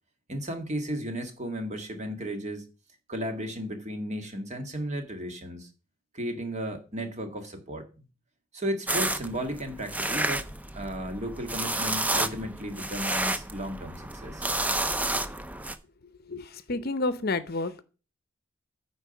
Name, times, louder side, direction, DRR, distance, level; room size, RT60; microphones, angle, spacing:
voice 1, 0.3-2.6 3.1-5.7 6.1-7.9 8.5-10.5 10.7-14.5, equal, 35° right, 5 dB, 1.8 m, -34 dB
sound 1, 8.9-15.7, right 2 dB, 10° right, 0.5 m, -30 dB
voice 2, 16.3-17.8, left 2 dB, 50° left, 13 dB, 0.7 m, -30 dB
9.5 x 4.7 x 6.9 m, 0.34 s
head